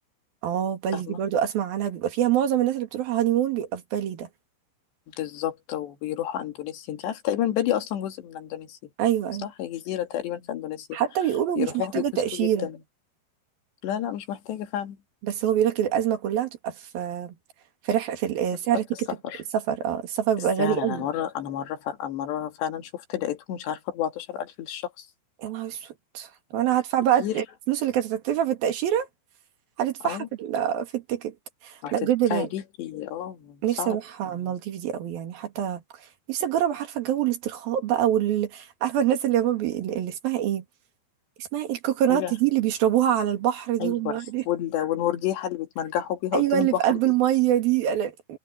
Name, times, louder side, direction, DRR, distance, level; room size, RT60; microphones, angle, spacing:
voice 1, 0.4-4.3 9.0-9.5 10.9-12.7 15.2-17.3 17.9-19.1 19.5-21.1 25.4-29.1 29.8-31.3 31.6-32.5 33.6-35.8 36.3-40.6 41.4-44.5 46.3-48.4, right 10 dB, 60° right, 3.7 m, -25 dB
voice 2, 5.2-8.8 9.4-11.0 11.6-12.8 13.8-15.0 19.2-19.4 20.6-25.1 27.2-27.4 30.0-30.3 31.8-34.0 42.1-42.3 43.8-44.1 44.5-47.0, left 11 dB, 75° left, 4.3 m, -30 dB
omnidirectional pair, 5.0 m